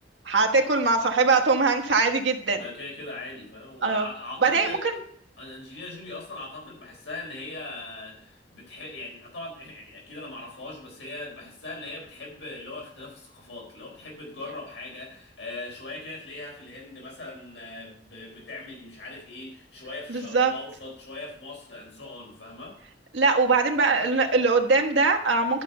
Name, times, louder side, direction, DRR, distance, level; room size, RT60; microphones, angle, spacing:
voice 1, 0.2-2.6 3.8-4.1 4.4-5.0 20.1-20.5 23.1-25.6, right 4 dB, 80° right, 3 dB, 1.3 m, -22 dB
voice 2, 2.5-4.8 5.4-22.8, left 2 dB, 80° left, -1 dB, 4.0 m, -40 dB
11.5 x 5.4 x 6.8 m, 0.62 s
head